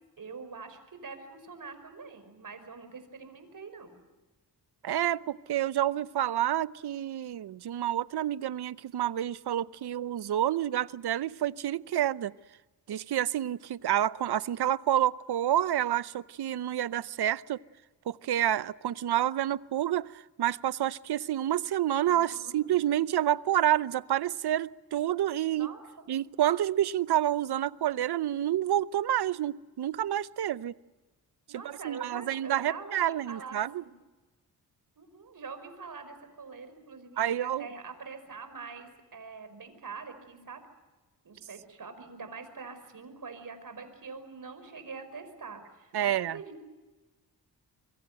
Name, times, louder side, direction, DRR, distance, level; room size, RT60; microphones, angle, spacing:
voice 1, 0.2-4.0 22.1-22.6 25.6-25.8 31.5-33.9 35.0-40.6 41.2-46.6, right 4 dB, 55° right, 5.4 m, -44 dB
voice 2, 4.8-12.3 12.9-17.6 18.1-25.7 26.1-30.7 31.5-33.8 37.2-37.7 45.9-46.4, right 11 dB, 80° right, 0.7 m, -29 dB
25.5 x 23.5 x 7.7 m
cardioid pair, 75°, 39 cm